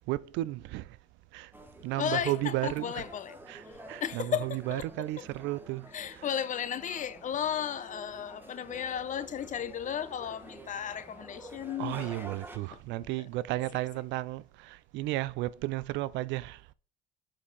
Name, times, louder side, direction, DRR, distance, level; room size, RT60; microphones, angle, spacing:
voice 1, 0.1-0.9 1.3-1.5 1.8-3.0 3.5-5.9 6.1-6.3 11.8-16.6, right 17 dB, 65° right, 0.4 m, -33 dB
sound 1, 1.5-12.6, right 1 dB, 10° right, 1.2 m, -49 dB
voice 2, 2.0-3.4 4.0-4.8 5.9-12.3 12.7-12.8, left 9 dB, 40° left, 0.6 m, -34 dB
5.9 x 4.9 x 4.0 m
supercardioid pair, 80°, 20 cm